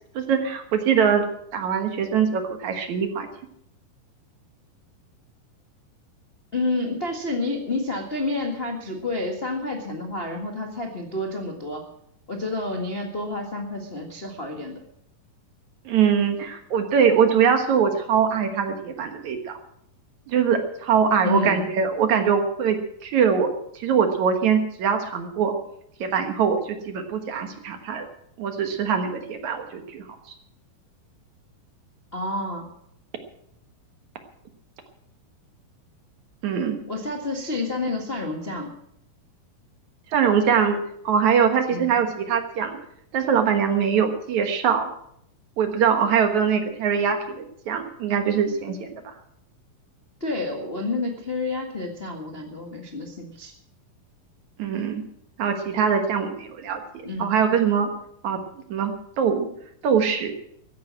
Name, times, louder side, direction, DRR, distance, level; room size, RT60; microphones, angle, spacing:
voice 1, 0.2-1.3 1.5-3.3 15.9-19.5 20.3-25.5 26.0-28.1 28.4-30.0 36.4-36.8 40.1-40.8 41.0-42.8 43.1-44.9 45.6-48.9 54.6-55.0 55.4-56.8 57.2-57.9 58.2-58.4 58.7-59.5 59.8-60.3, right 7 dB, 60° right, 6 dB, 2.5 m, -22 dB
voice 2, 6.5-11.8 12.3-14.7 21.2-21.6 32.1-32.7 36.9-38.7 41.7-42.0 50.2-53.5 57.0-57.3, left 2 dB, 35° left, 1 dB, 0.9 m, -29 dB
14.5 x 10.5 x 7.4 m, 0.74 s
omnidirectional pair, 4.1 m